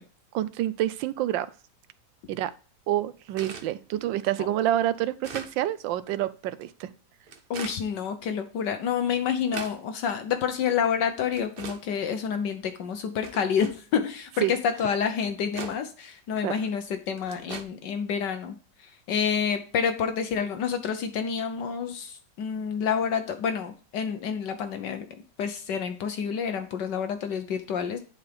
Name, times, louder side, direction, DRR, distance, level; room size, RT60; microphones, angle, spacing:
voice 1, 0.3-1.5 2.3-2.5 2.9-6.9 14.4-14.5 16.4-16.5, right 13 dB, 80° right, 15 dB, 1.3 m, -27 dB
sound 1, 3.4-3.7 4.3-4.4 4.9-5.5 6.5-6.6 7.3-7.8 8.7-8.8 9.1-9.8 10.6-10.7 11.3-11.8 12.5-12.6 13.2-13.8 14.8-14.9 15.2-15.8 16.6-16.7 17.2-17.6, right 5 dB, 45° right, 0.7 m, -39 dB
voice 2, 7.5-18.6 18.8-25.1 25.4-28.0, left 7 dB, 70° left, 7 dB, 1.4 m, -28 dB
10.5 x 4.3 x 3.4 m, 0.38 s
omnidirectional pair, 2.0 m